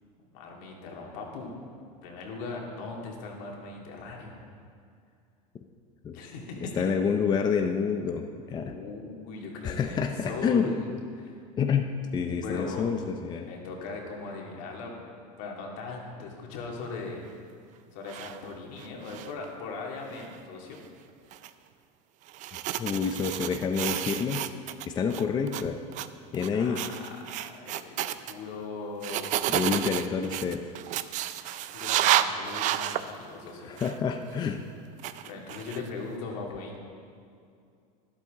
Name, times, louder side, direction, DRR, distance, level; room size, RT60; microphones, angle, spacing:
voice 1, 0.3-1.6 2.0-4.4 6.1-6.8 8.6-10.9 11.1-11.4 12.4-13.0 13.5-14.9 15.4-17.2 17.9-20.8 26.5-26.8 27.2-29.4 31.1-31.2 31.7-33.7 35.2-36.8, left 4 dB, 65° left, -1 dB, 2.4 m, -39 dB
voice 2, 6.7-8.2 8.5-8.7 9.6-10.7 11.6-11.9 12.1-13.5 22.8-24.5 24.8-25.8 26.3-26.8 29.5-30.8 33.7-34.6, left 6 dB, 20° left, 5 dB, 0.5 m, -28 dB
sound 1, 18.1-18.4 18.8-19.5 20.1-20.3 21.3-21.5 22.3-24.9 25.1-25.6 25.9-26.1 26.3-26.5 26.8-28.3 29.0-33.1 33.8-34.0 35.0-35.9, right 13 dB, 40° right, 0.5 m, -30 dB
12.0 x 11.5 x 3.7 m, 2.3 s
supercardioid pair, 125°, 19 cm